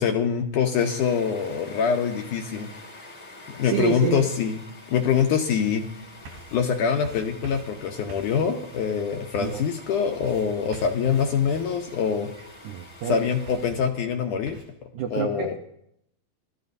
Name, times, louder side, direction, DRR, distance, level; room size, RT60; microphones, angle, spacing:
voice 1, 0.0-2.7 3.5-4.5 4.9-5.8 6.5-12.3 13.1-14.6 15.1-15.5, left 7 dB, 70° left, 3 dB, 2.0 m, -24 dB
sound 1, 0.8-13.7, left 2 dB, 20° left, 1.2 m, -46 dB
voice 2, 3.6-4.3 9.4-9.7 12.6-13.3 14.9-15.5, right 9 dB, 80° right, 3 dB, 1.7 m, -28 dB
sound 2, 5.1-14.6, right 2 dB, 60° right, 6.5 m, -48 dB
24.0 x 13.5 x 2.7 m, 0.75 s
omnidirectional pair, 4.4 m